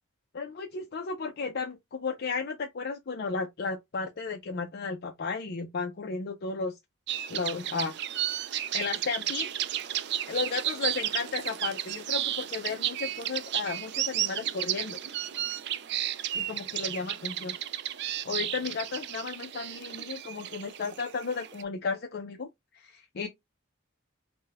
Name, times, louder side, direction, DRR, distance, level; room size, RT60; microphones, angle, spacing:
voice 1, 0.3-6.7 7.3-7.9 8.7-9.5 10.3-15.0 16.3-17.5 18.2-22.5 22.7-23.3, left 4 dB, 50° left, 0.5 m, -34 dB
sound 1, 7.1-21.6, right 11 dB, 55° right, 0.4 m, -33 dB
5.1 x 2.2 x 3.4 m
head